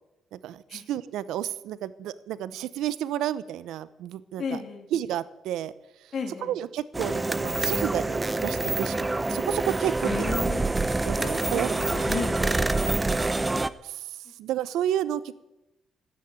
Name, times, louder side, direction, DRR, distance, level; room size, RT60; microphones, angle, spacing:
voice 1, 0.3-4.6 4.9-5.7 6.4-10.3 11.0-11.8 13.8-14.1 14.4-15.4, right 11 dB, 85° right, 17 dB, 0.7 m, -31 dB
voice 2, 4.4-4.8 6.1-6.5 10.0-10.7 11.1-12.6, left 5 dB, 55° left, 5 dB, 3.1 m, -34 dB
sound 1, 6.9-13.7, right 2 dB, 15° right, 0.7 m, -26 dB
13.5 x 9.6 x 9.4 m, 0.92 s
cardioid pair, 90°, 0 cm